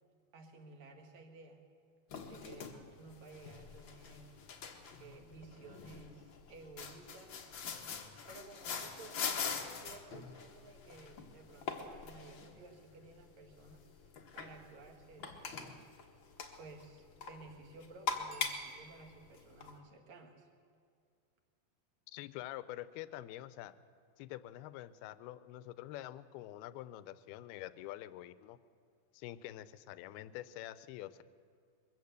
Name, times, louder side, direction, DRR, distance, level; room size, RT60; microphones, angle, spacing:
voice 1, 0.3-1.6 2.3-4.3 4.9-7.4 8.3-13.8 14.4-15.9 16.6-20.5, right 3 dB, 50° right, 4 dB, 2.9 m, -55 dB
sound 1, 2.1-19.8, left 6 dB, 65° left, 1.2 m, -44 dB
Bicycle bell, 18.3-19.5 24.9-25.0, right 11 dB, 80° right, 3.5 m, -58 dB
voice 2, 22.1-23.7 24.2-28.6 29.1-31.2, left 14 dB, 80° left, 15 dB, 2.6 m, -46 dB
22.0 x 15.5 x 8.2 m, 2.3 s
omnidirectional pair, 4.5 m